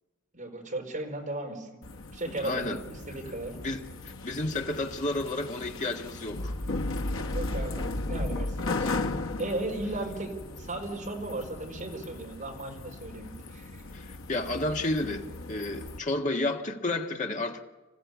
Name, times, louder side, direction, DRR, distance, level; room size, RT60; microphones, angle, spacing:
voice 1, 0.3-1.7 2.1-3.6 7.3-8.9 9.4-13.8, right 2 dB, 40° right, 4.4 m, -36 dB
sound 1, 1.8-16.0, left 2 dB, 85° left, 1.1 m, -36 dB
voice 2, 2.3-2.8 3.5-6.5 8.8-9.1 13.9-17.6, left 2 dB, 40° left, 1.7 m, -32 dB
26.5 x 15.5 x 8.3 m
head